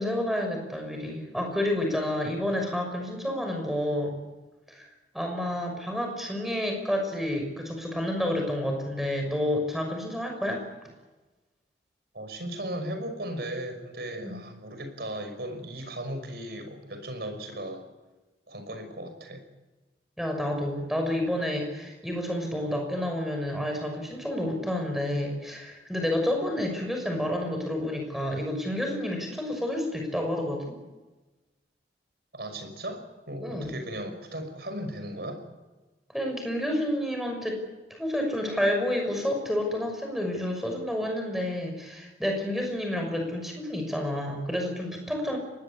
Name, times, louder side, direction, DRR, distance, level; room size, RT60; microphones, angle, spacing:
voice 1, 0.0-4.1 4.7-4.9 5.1-10.6 14.2-14.4 20.2-30.6 33.4-33.7 36.1-37.6 37.9-45.4, left 1 dB, ahead, 3 dB, 6.2 m, -29 dB
voice 2, 12.1-17.9 18.5-19.5 32.3-35.4, right 1 dB, 65° right, 7 dB, 5.8 m, -36 dB
24.0 x 20.0 x 8.5 m, 1.2 s
head